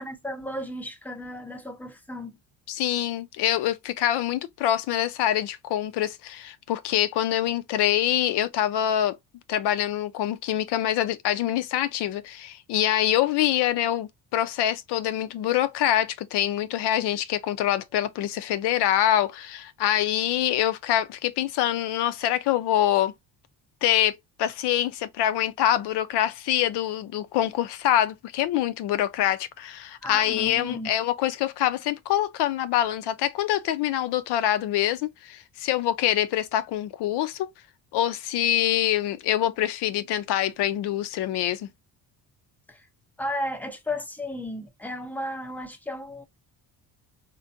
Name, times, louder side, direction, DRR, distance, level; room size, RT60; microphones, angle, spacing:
voice 1, 0.0-2.4 30.0-30.9 42.7-42.9 43.2-46.2, left 1 dB, 5° left, 0.4 m, -34 dB
voice 2, 2.7-9.2 9.5-23.1 23.8-37.5 37.9-41.7, left 12 dB, 85° left, 0.6 m, -25 dB
3.9 x 2.2 x 2.5 m
cardioid pair, 160°, 39 cm